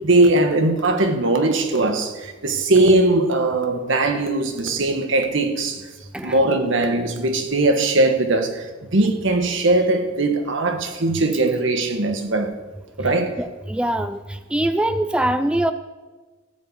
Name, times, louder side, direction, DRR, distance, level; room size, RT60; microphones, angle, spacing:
voice 1, 0.0-5.9 6.2-12.5 13.0-13.4, right 2 dB, 65° right, 1.4 m, -20 dB
voice 2, 13.4-14.2 14.5-15.7, right 1 dB, 5° right, 0.4 m, -22 dB
14.0 x 5.3 x 8.5 m
head